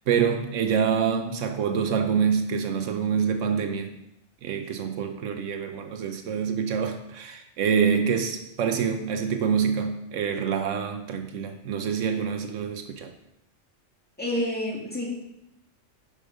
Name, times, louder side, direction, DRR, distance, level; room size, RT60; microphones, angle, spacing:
voice 1, 0.1-4.0 4.4-13.1, right 7 dB, 90° right, 6 dB, 1.1 m, -26 dB
voice 2, 14.2-15.1, left 1 dB, 10° left, -4 dB, 2.2 m, -28 dB
10.5 x 5.1 x 5.2 m, 0.87 s
omnidirectional pair, 1.2 m